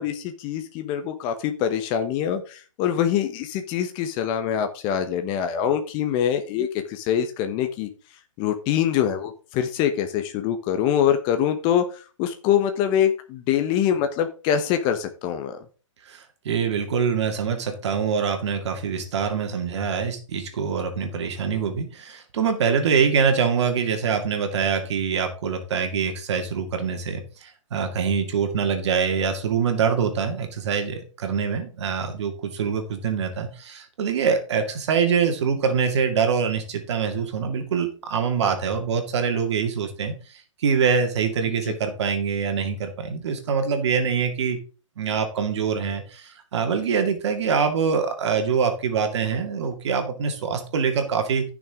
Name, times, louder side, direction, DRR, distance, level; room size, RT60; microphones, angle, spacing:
voice 1, 0.0-7.9 8.4-15.6 41.7-41.8, left 9 dB, 30° left, 7 dB, 1.0 m, -24 dB
voice 2, 16.0-44.6 45.0-51.4, right 6 dB, 60° right, 5 dB, 2.2 m, -24 dB
14.0 x 6.2 x 3.7 m, 0.36 s
hypercardioid pair, 135°, 17 cm